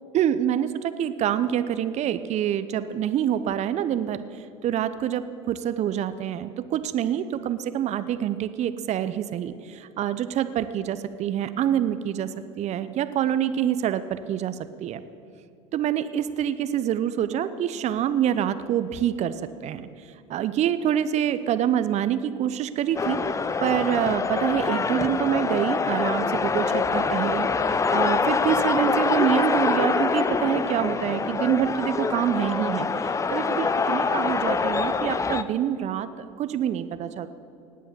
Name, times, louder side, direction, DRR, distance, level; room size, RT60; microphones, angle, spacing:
voice 1, 0.1-4.2 4.6-12.3 12.6-15.0 15.7-19.4 19.6-19.9 20.3-23.2 23.6-32.9 33.3-37.3, right 10 dB, 40° right, 13 dB, 0.7 m, -26 dB
sound 1, 23.0-35.4, left 4 dB, 15° left, 0.6 m, -25 dB
18.5 x 8.7 x 6.9 m, 2.6 s
hypercardioid pair, 75°, 18 cm